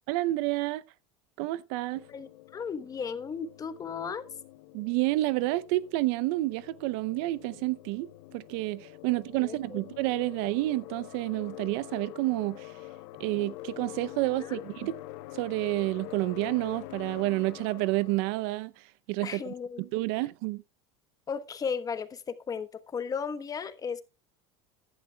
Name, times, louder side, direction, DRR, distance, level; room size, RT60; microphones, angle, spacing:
voice 1, 0.1-0.8 1.4-2.0 4.7-12.7 13.2-15.0 15.3-20.6, right 19 dB, 70° right, 0.6 m, -29 dB
sound 1, 1.9-18.4, left 16 dB, 75° left, 0.8 m, -46 dB
voice 2, 2.1-4.3 9.4-9.8 14.4-14.6 19.2-19.8 20.1-20.3 21.3-24.0, left 6 dB, 25° left, 1.1 m, -35 dB
14.5 x 11.0 x 2.3 m
supercardioid pair, 125°, 14 cm